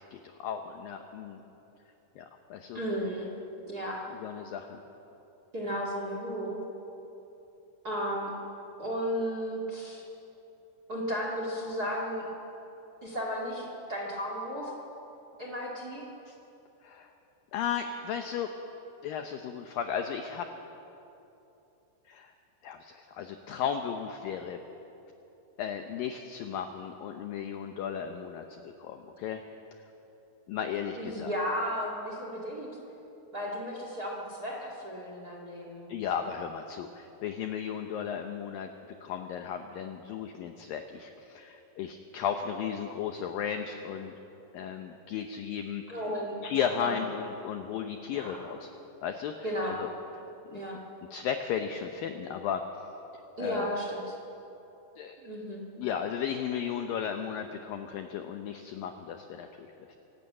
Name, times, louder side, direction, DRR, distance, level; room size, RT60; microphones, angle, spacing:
voice 1, 0.0-1.4 2.2-2.8 4.1-4.8 16.3-16.4 16.8-17.1 17.5-18.5 19.0-20.5 22.1-22.3 22.6-24.6 25.6-29.4 30.5-31.3 35.9-38.7 39.0-44.1 44.5-45.8 46.4-48.7 49.0-49.9 50.5-50.6 51.1-52.6 53.4-53.7 55.0-55.2 55.8-60.0, left 8 dB, 80° left, 6 dB, 2.1 m, -35 dB
voice 2, 2.7-3.3 3.7-4.0 5.5-6.6 7.8-8.3 8.8-10.0 10.9-12.2 13.0-14.8 15.4-16.0 31.0-32.7 33.3-35.9 45.9-46.4 46.8-47.0 48.1-48.4 49.4-49.8 50.5-50.8 53.4-54.1 55.2-55.6, equal, 30° right, -1 dB, 1.9 m, -34 dB
25.0 x 12.0 x 8.7 m, 3.0 s
omnidirectional pair, 5.0 m